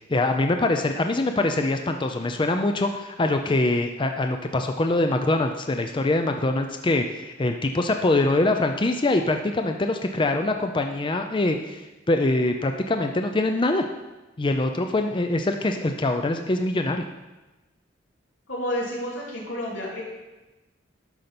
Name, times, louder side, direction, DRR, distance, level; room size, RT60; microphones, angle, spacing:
voice 1, 0.0-13.9 14.4-17.0, left 2 dB, 25° left, 5 dB, 0.5 m, -24 dB
voice 2, 18.5-20.0, equal, 90° left, -5 dB, 3.5 m, -30 dB
12.0 x 5.4 x 5.9 m, 1.1 s
head